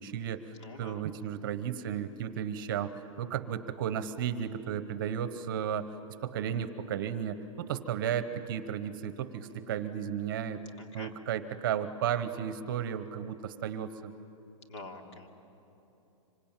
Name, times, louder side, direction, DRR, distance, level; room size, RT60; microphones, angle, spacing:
voice 1, 0.0-0.4 0.8-5.9 6.2-10.6 10.9-14.1, right 9 dB, 40° right, 12 dB, 1.0 m, -34 dB
voice 2, 0.6-1.0 1.4-1.5 10.8-11.1 14.7-15.3, left 2 dB, 55° left, 3 dB, 3.0 m, -46 dB
26.0 x 24.5 x 9.0 m, 2.9 s
hypercardioid pair, 170°, 18 cm